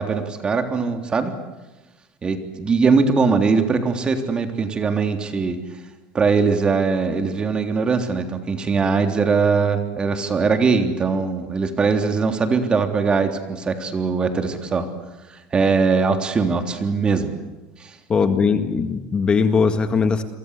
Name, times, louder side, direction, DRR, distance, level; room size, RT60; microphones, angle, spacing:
voice 1, 0.0-1.3 2.2-5.6 6.1-14.9 15.3-17.4 17.8-17.9, right 4 dB, 25° right, 6 dB, 3.4 m, -21 dB
voice 2, 18.1-20.2, left 5 dB, 25° left, 8 dB, 1.8 m, -19 dB
29.5 x 23.5 x 8.3 m, 1.1 s
supercardioid pair, 125°, 4 cm